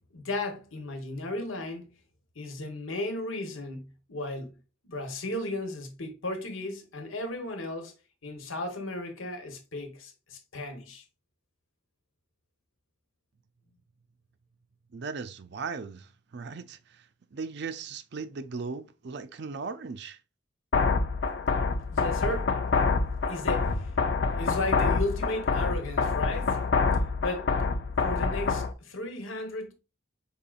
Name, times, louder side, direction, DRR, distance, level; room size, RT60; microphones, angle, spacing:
voice 1, 0.1-1.9 2.3-4.6 4.8-7.9 8.2-11.0 21.9-22.6 23.3-23.9 24.4-26.6 27.2-27.5 28.0-29.7, left 2 dB, 85° left, 1.1 m, -35 dB
voice 2, 14.9-17.0 17.3-20.2, right 4 dB, 55° right, 0.4 m, -38 dB
sound 1, 20.7-28.7, left 4 dB, 55° left, 0.5 m, -26 dB
5.4 x 3.8 x 2.4 m
head